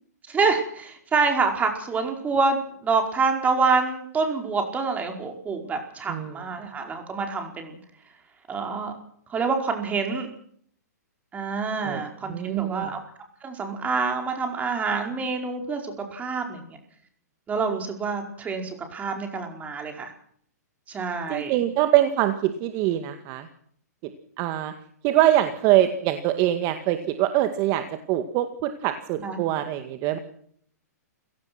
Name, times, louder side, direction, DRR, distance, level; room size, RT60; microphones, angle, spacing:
voice 1, 0.3-7.8 8.5-8.9 9.3-10.3 11.3-13.0 13.4-16.8 17.5-20.1 20.9-21.5 29.2-29.5, right 4 dB, 15° right, 4 dB, 4.8 m, -27 dB
voice 2, 11.8-12.9 21.3-23.5 24.4-24.7 25.0-30.2, right 13 dB, 35° right, 8 dB, 2.1 m, -24 dB
29.5 x 17.5 x 6.1 m, 0.64 s
hypercardioid pair, 135°, 9 cm